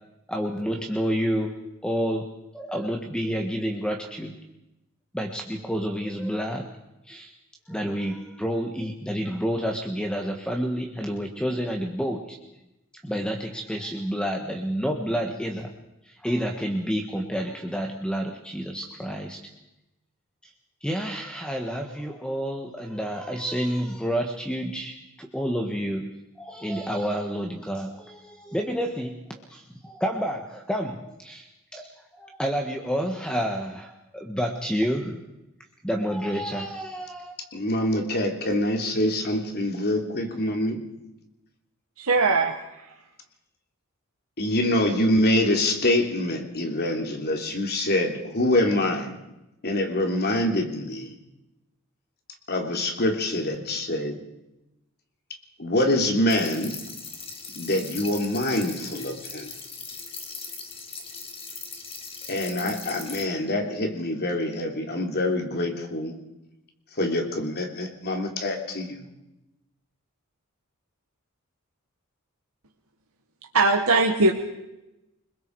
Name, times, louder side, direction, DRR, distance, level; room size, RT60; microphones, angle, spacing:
voice 1, 0.3-2.3 2.5-4.3 5.1-6.6 7.1-7.3 7.7-12.4 13.0-15.7 16.0-19.4 20.4-20.5 20.8-26.1 26.4-29.2 29.5-35.2 35.8-37.3, equal, 5° left, 2 dB, 1.6 m, -29 dB
voice 2, 37.5-40.8 44.4-49.1 49.6-51.2 52.5-54.2 55.6-56.8 57.5-59.5 62.3-66.2 67.0-69.1, left 1 dB, 50° left, 3 dB, 3.4 m, -25 dB
voice 3, 42.0-42.9 73.5-74.3, right 3 dB, 85° right, 1 dB, 1.7 m, -20 dB
sound 1, 56.3-63.2, left 4 dB, 25° left, 2.8 m, -39 dB
29.0 x 21.0 x 4.8 m, 0.94 s
head